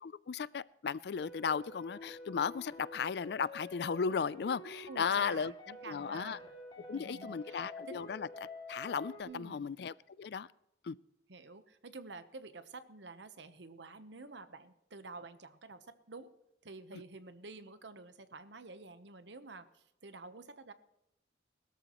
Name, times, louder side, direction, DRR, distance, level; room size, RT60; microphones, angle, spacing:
voice 1, 0.0-5.5 5.9-6.4 6.9-8.3 8.7-10.5 10.8-11.0, left 6 dB, 65° left, 0.4 m, -35 dB
sound 1, 1.2-9.2, left 2 dB, 30° left, 2.2 m, -49 dB
voice 2, 4.9-6.5 6.9-8.1 9.2-9.8 11.3-16.3 16.6-20.7, right 3 dB, 80° right, 1.0 m, -50 dB
20.5 x 13.0 x 3.0 m
head